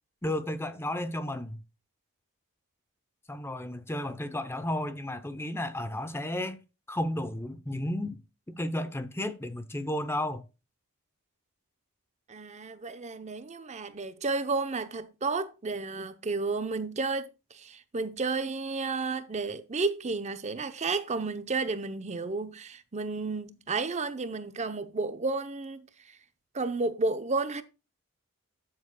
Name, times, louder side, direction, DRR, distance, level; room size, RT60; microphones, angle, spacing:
voice 1, 0.2-1.6 3.3-6.6 6.9-8.2 8.5-10.5, left 1 dB, 10° left, 0.6 m, -33 dB
voice 2, 12.3-26.2 26.5-27.6, right 3 dB, 30° right, 0.7 m, -32 dB
12.5 x 7.3 x 2.2 m
head